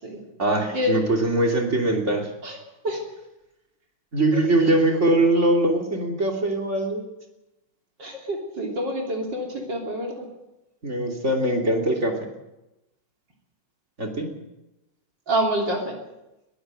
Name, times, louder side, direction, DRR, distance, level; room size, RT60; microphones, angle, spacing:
voice 1, 0.4-2.3 4.1-7.0 10.8-12.3 14.0-14.3, right 2 dB, 35° right, 2 dB, 3.3 m, -22 dB
voice 2, 8.0-10.3 15.3-15.9, equal, 60° right, 1 dB, 3.9 m, -27 dB
22.0 x 15.0 x 7.8 m, 0.95 s
omnidirectional pair, 2.2 m